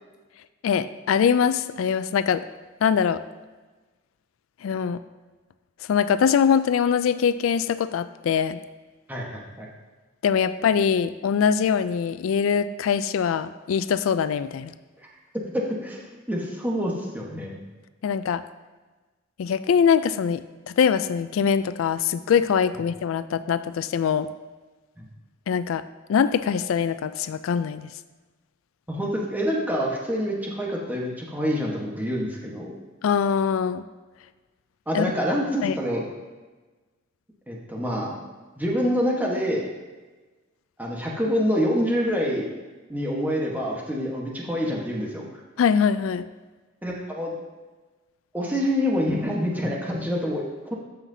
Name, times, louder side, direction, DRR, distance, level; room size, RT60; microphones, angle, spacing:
voice 1, 0.6-2.4 2.8-3.2 4.6-5.0 5.9-8.6 10.2-14.7 18.0-18.4 19.4-24.3 25.5-25.8 26.1-27.9 33.0-33.8 34.9-35.1 35.6-35.8 45.6-46.3, left 7 dB, 90° left, 13 dB, 0.3 m, -23 dB
voice 2, 9.1-9.7 15.5-16.0 16.3-17.6 25.0-25.1 28.9-32.7 34.9-36.0 37.5-38.1 38.6-39.7 40.8-42.5 42.9-45.3 46.8-47.3 48.3-50.8, equal, 10° right, -3 dB, 1.2 m, -26 dB
13.0 x 5.8 x 2.7 m, 1.3 s
head